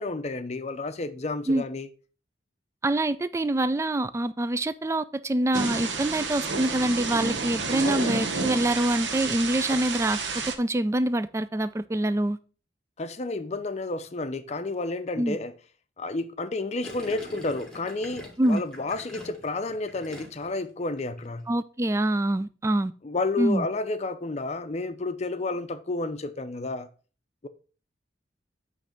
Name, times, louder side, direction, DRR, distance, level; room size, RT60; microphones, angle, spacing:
voice 1, 0.0-1.9 7.8-8.1 9.7-9.8 13.0-15.5 16.0-21.5 23.0-26.9, left 2 dB, 40° left, 0.6 m, -31 dB
voice 2, 2.8-10.2 10.5-12.4 15.2-15.4 18.4-18.6 21.5-22.9 23.4-23.7, right 1 dB, 15° right, 0.3 m, -25 dB
Thunder / Rain, 5.5-10.6, right 4 dB, 85° right, 1.0 m, -30 dB
Gurgling, 16.8-20.6 20.9-21.3, equal, 5° left, 1.6 m, -44 dB
8.0 x 3.3 x 5.1 m
head